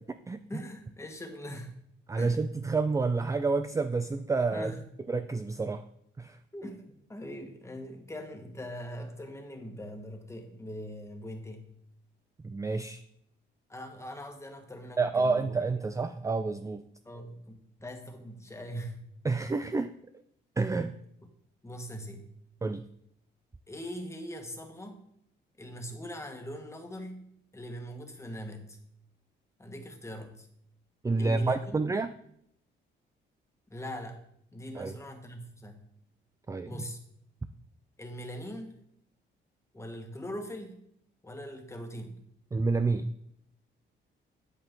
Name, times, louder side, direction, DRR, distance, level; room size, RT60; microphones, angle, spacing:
voice 1, 0.5-1.7 2.2-2.4 4.5-4.8 6.5-11.7 13.7-15.5 17.0-19.1 21.6-22.3 23.7-25.0 25.6-27.2 27.5-28.8 29.6-30.5 31.2-31.8 33.7-34.2 34.5-35.9 36.6-37.0 38.0-38.7 39.7-40.8 41.2-42.2, equal, 15° left, 4 dB, 1.6 m, -41 dB
voice 2, 2.1-4.7 5.1-5.8 6.2-6.4 12.4-13.0 15.0-16.8 19.2-19.9 20.6-20.9 22.6-22.9 31.0-32.1 34.7-34.9 36.5-36.8 42.5-43.1, right 3 dB, 15° right, 10 dB, 0.4 m, -29 dB
8.6 x 8.1 x 3.8 m, 0.72 s
cardioid pair, 90°, 20 cm